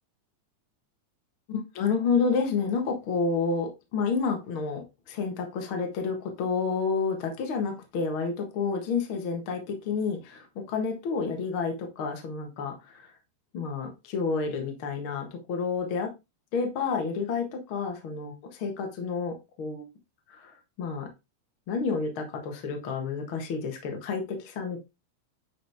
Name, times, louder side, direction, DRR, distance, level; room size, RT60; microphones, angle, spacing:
voice 1, 1.5-13.1 13.5-16.1 16.5-19.8 20.4-21.1 21.7-24.8, left 5 dB, 50° left, 3 dB, 1.9 m, -30 dB
10.0 x 5.0 x 3.5 m, 0.25 s
omnidirectional pair, 3.9 m